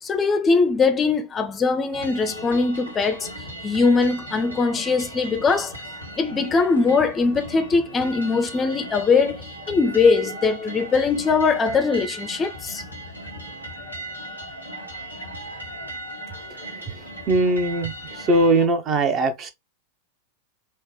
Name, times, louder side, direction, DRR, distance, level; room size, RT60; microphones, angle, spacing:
voice 1, 0.0-5.8 6.2-12.8, left 4 dB, 20° left, 0.5 m, -21 dB
sound 1, 1.9-18.7, right 1 dB, 85° right, 1.0 m, -37 dB
voice 2, 17.3-19.5, right 2 dB, 30° right, 0.6 m, -20 dB
4.2 x 2.1 x 3.1 m
figure-of-eight pair, 90°, 0 cm